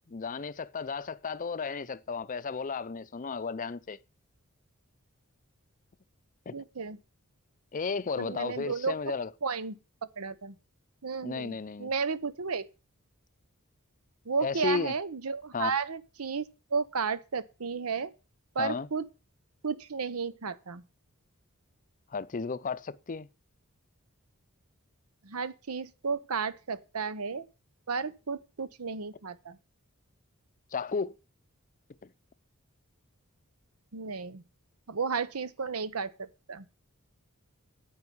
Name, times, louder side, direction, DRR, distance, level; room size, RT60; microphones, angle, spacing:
voice 1, 0.1-4.0 6.5-6.6 7.7-9.3 11.2-11.9 14.4-14.9 15.5-15.7 18.6-18.9 22.1-23.3 30.7-31.2 32.0-32.1, left 5 dB, 35° left, 0.5 m, -33 dB
voice 2, 6.5-7.0 8.2-9.0 9.4-9.8 10.2-10.6 11.0-12.7 14.3-16.5 16.7-18.1 18.5-19.0 19.6-20.8 25.2-27.5 27.9-29.6 33.9-34.4 34.9-36.7, right 5 dB, 85° right, 0.9 m, -33 dB
9.6 x 8.8 x 5.5 m
head